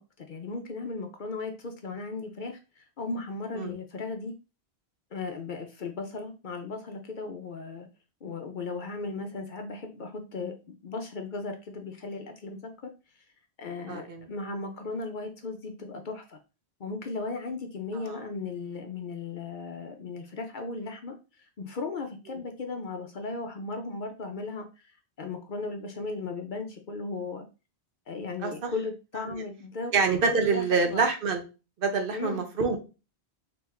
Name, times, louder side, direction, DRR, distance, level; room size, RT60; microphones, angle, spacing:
voice 1, 0.0-4.3 5.1-7.9 8.2-12.6 13.6-16.4 16.8-24.9 25.2-27.4 28.1-29.9 30.3-31.0 32.1-32.4, left 3 dB, 55° left, 4 dB, 0.7 m, -36 dB
voice 2, 13.9-14.3 18.1-18.2 28.4-28.7 29.3-29.4 29.9-31.4 31.8-32.8, right 4 dB, 60° right, 5 dB, 0.9 m, -26 dB
3.2 x 3.0 x 3.5 m, 0.30 s
omnidirectional pair, 1.1 m